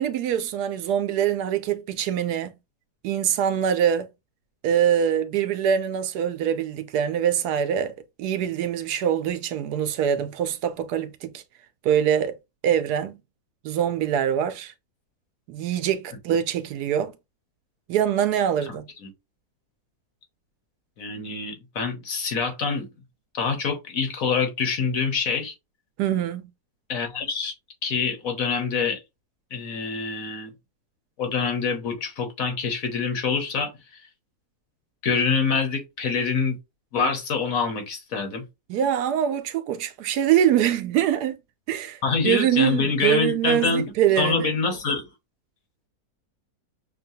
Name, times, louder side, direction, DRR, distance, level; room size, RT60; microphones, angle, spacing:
voice 1, 0.0-2.5 3.0-4.1 4.6-11.4 11.8-12.3 12.6-13.2 13.6-14.7 15.5-17.1 17.9-18.9 26.0-26.5 38.7-41.4 41.7-44.5, right 9 dB, 80° right, 1.2 m, -24 dB
voice 2, 18.7-19.1 21.0-22.9 23.3-25.5 26.9-27.5 27.8-29.0 29.5-30.5 31.2-33.7 35.0-36.6 36.9-38.4 42.0-43.9 44.2-45.0, left 5 dB, 60° left, 1.4 m, -26 dB
6.4 x 2.2 x 2.7 m
omnidirectional pair, 1.7 m